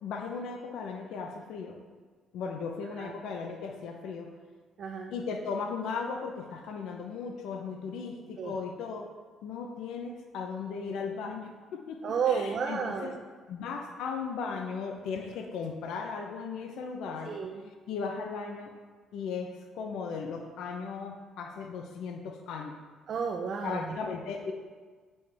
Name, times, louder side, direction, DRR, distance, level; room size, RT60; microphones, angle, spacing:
voice 1, 0.0-1.8 2.3-4.3 5.1-9.1 9.4-12.0 12.3-13.1 13.5-17.4 17.9-18.7 19.1-22.8 23.6-24.5, left 5 dB, 80° left, 3 dB, 0.7 m, -37 dB
voice 2, 4.8-5.1 8.4-8.6 12.0-13.2 17.2-17.7 23.1-24.0, right 6 dB, 50° right, 2 dB, 0.5 m, -32 dB
8.1 x 5.4 x 3.4 m, 1.5 s
cardioid pair, 120°, 0 cm